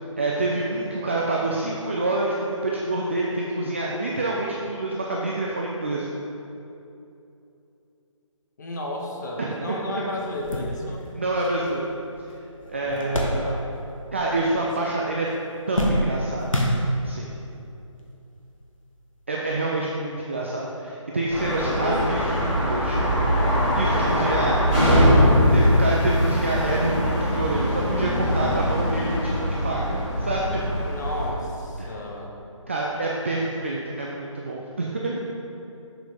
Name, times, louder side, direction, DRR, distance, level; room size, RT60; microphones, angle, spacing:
voice 1, 0.2-6.1 9.4-10.0 11.1-11.9 12.7-13.6 14.1-15.3 15.7-16.5 17.0-17.3 19.3-23.4 23.7-25.1 25.5-30.6 31.8-31.9 32.7-35.3, right 2 dB, 25° right, -3 dB, 0.4 m, -27 dB
voice 2, 8.6-11.0 12.8-13.7 21.4-22.2 30.8-32.3, left 1 dB, 35° left, -1 dB, 1.1 m, -33 dB
sound 1, 9.7-9.8 10.2-14.0 14.2-14.9 15.2-17.3 18.1-18.2 19.5-19.6, equal, 75° left, 1.4 m, -28 dB
sound 2, 21.3-31.3, equal, 15° left, 1.9 m, -22 dB
7.0 x 5.9 x 5.0 m, 2.8 s
figure-of-eight pair, 150°, 17 cm